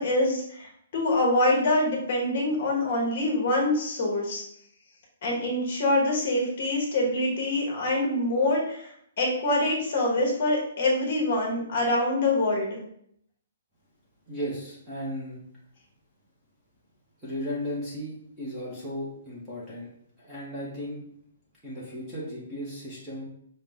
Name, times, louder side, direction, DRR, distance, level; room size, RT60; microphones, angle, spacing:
voice 1, 0.0-4.4 5.2-8.9 9.2-12.8, left 1 dB, 35° left, -1 dB, 1.0 m, -25 dB
voice 2, 14.3-15.4 17.2-19.9 20.2-21.0 21.6-23.2, equal, 5° right, -8 dB, 0.7 m, -35 dB
5.6 x 2.1 x 3.4 m, 0.69 s
hypercardioid pair, 180°, 0 cm